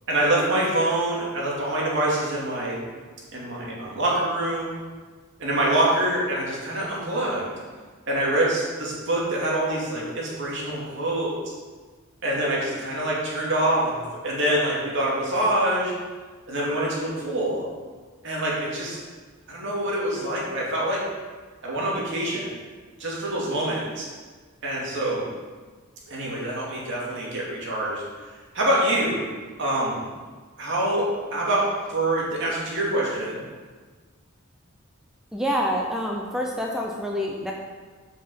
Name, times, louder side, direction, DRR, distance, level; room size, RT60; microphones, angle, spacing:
voice 1, 0.1-2.8 3.3-4.7 5.4-7.5 8.1-11.4 12.2-15.9 16.5-17.7 18.2-19.0 19.5-21.0 21.6-22.5 23.0-24.1 24.6-25.3 26.1-28.0 28.5-29.2 29.6-30.1 30.6-33.4, right 1 dB, 60° right, -5 dB, 2.6 m, -25 dB
voice 2, 35.3-37.5, equal, 5° right, -1 dB, 0.7 m, -27 dB
7.3 x 5.6 x 7.0 m, 1.4 s
head